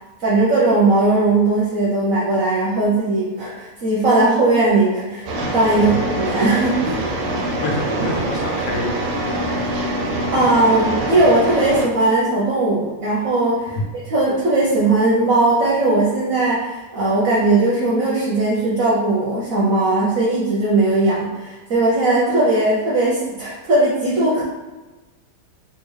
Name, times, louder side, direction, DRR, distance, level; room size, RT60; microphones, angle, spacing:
voice 1, 0.2-7.0 10.3-13.8 14.1-24.4, right 2 dB, 60° right, -5 dB, 0.9 m, -18 dB
sound 1, 5.3-11.9, right 1 dB, 80° right, 1.3 m, -24 dB
voice 2, 7.3-9.8 13.7-13.8, left 2 dB, 80° left, -1 dB, 1.4 m, -28 dB
3.7 x 2.4 x 3.1 m, 1.2 s
omnidirectional pair, 2.0 m